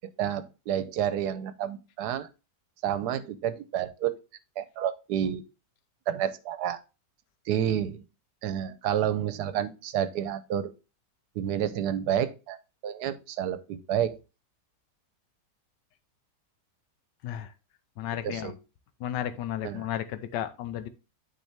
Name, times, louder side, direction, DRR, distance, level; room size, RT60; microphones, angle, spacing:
voice 1, 0.2-2.3 2.8-4.2 4.6-5.4 6.1-6.8 7.5-8.1 8.4-10.7 11.3-12.6 12.8-14.2 18.2-18.6 19.6-19.9, right 10 dB, 75° right, 1.2 m, -29 dB
voice 2, 18.0-18.5 19.0-20.9, left 11 dB, 85° left, 1.3 m, -33 dB
9.1 x 4.5 x 3.4 m
omnidirectional pair, 1.8 m